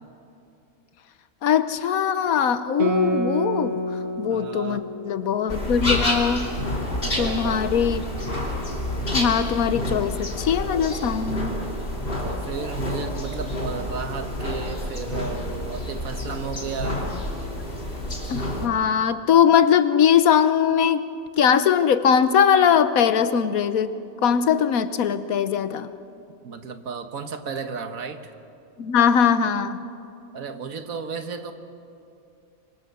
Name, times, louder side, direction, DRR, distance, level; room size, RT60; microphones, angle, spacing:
voice 1, 1.4-3.8 4.2-6.5 7.2-8.0 9.1-11.5 18.3-21.0 21.4-23.9 24.2-25.9 28.8-29.8, left 8 dB, 80° left, 12 dB, 1.3 m, -20 dB
Guitar, 2.8-7.7, right 2 dB, 45° right, 2.1 m, -30 dB
voice 2, 4.3-4.8 7.0-7.6 12.0-17.1 26.4-28.3 30.3-31.5, right 5 dB, 75° right, 8 dB, 1.7 m, -34 dB
sound 1, 5.5-18.7, left 1 dB, 40° left, 3.2 m, -29 dB
26.5 x 23.5 x 6.8 m, 2.7 s
omnidirectional pair, 1.5 m